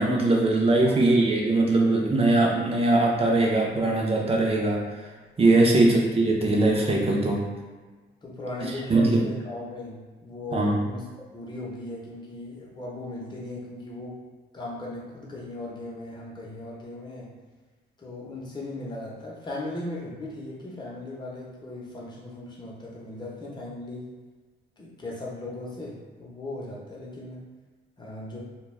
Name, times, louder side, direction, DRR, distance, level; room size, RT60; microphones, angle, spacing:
voice 1, 0.0-4.8 5.4-7.5 8.9-9.3 10.5-10.8, right 2 dB, 30° right, -1 dB, 0.6 m, -21 dB
voice 2, 8.2-11.1 11.3-14.2 14.5-17.3 18.0-24.1 24.8-27.4 28.0-28.4, left 2 dB, 20° left, -5 dB, 0.8 m, -38 dB
2.3 x 2.2 x 3.2 m, 1.4 s
cardioid pair, 90°, 20 cm